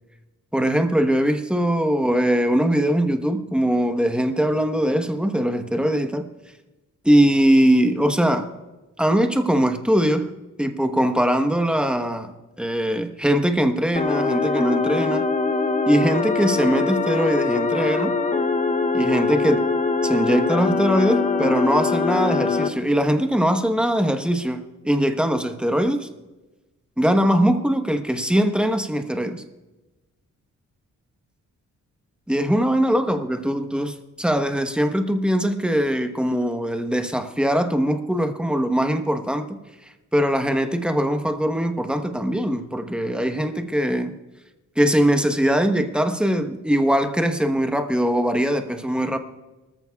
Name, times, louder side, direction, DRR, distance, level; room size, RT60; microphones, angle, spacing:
voice 1, 0.5-6.2 7.0-8.5 9.0-10.3 10.6-15.3 15.9-18.2 18.9-19.6 20.0-26.1 27.0-29.4 32.3-39.5 40.1-44.1 44.8-49.2, equal, 5° right, 7 dB, 1.1 m, -21 dB
sound 1, 14.0-22.7, left 4 dB, 25° left, 0.8 m, -23 dB
24.0 x 14.0 x 2.4 m, 1.1 s
cardioid pair, 100°, 31 cm